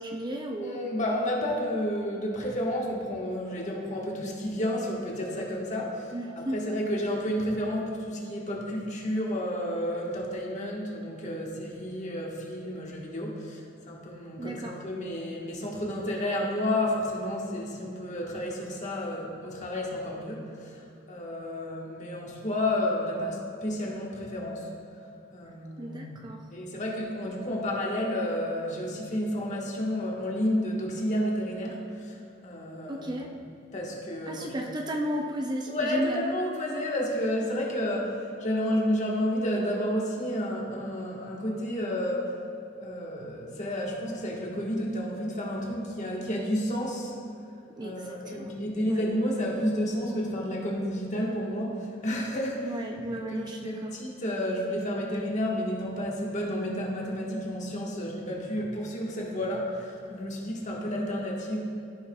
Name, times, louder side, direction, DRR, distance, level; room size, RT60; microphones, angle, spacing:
voice 1, 0.0-0.8 6.1-6.7 14.4-14.8 25.8-26.5 32.9-33.3 34.3-36.2 47.8-48.5 48.9-49.0 52.6-53.9, right 1 dB, 20° right, 2 dB, 0.4 m, -34 dB
voice 2, 0.6-24.7 25.3-26.2 26.5-33.3 33.7-34.6 35.7-42.4 42.8-47.1 47.8-61.6, equal, 40° left, -2 dB, 1.3 m, -31 dB
14.0 x 5.6 x 2.2 m, 2.5 s
head